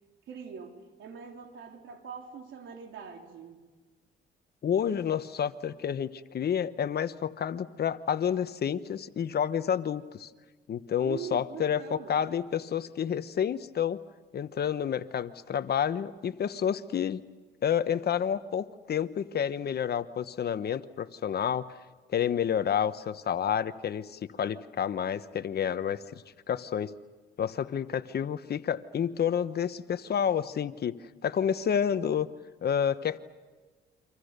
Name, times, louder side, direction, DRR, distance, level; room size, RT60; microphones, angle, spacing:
voice 1, 0.3-3.7 11.0-12.1, right 7 dB, 75° right, 3 dB, 3.7 m, -43 dB
voice 2, 4.6-10.3 10.7-14.0 14.3-17.2 17.6-21.7 22.1-26.0 26.5-26.9 27.4-31.0 31.2-32.3 32.6-33.2, left 8 dB, 55° left, 12 dB, 1.1 m, -29 dB
29.5 x 26.0 x 6.8 m, 1.3 s
cardioid pair, 90°, 20 cm